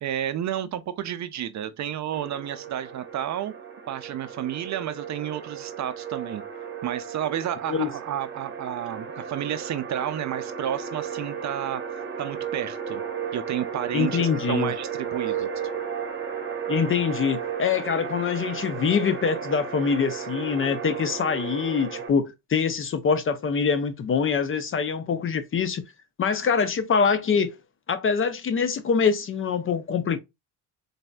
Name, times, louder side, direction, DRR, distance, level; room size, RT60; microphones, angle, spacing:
voice 1, 0.0-3.5 3.9-6.4 6.8-11.8 12.2-13.0 13.3-15.5, right 10 dB, 45° right, 0.5 m, -31 dB
sound 1, 2.1-22.1, right 7 dB, 30° right, 0.9 m, -34 dB
voice 2, 13.9-14.7 16.7-25.8 26.2-27.6 27.9-30.2, left 6 dB, 35° left, 0.5 m, -24 dB
4.1 x 2.7 x 2.2 m
cardioid pair, 95°, 39 cm